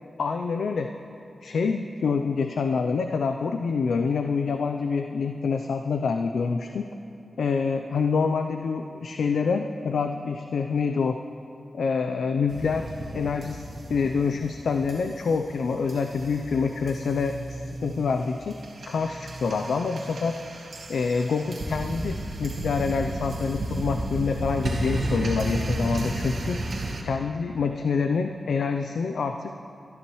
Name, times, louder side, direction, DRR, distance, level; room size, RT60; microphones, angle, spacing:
voice 1, 0.2-0.9 1.4-6.9 7.4-11.2 11.7-13.6 13.9-18.6 18.9-20.4 20.9-26.6 27.0-29.5, left 5 dB, 90° left, 5 dB, 0.5 m, -26 dB
sound 1, 12.5-27.0, right 1 dB, 75° right, 2.0 m, -33 dB
25.0 x 13.0 x 3.1 m, 2.7 s
wide cardioid pair, 90°, 0 cm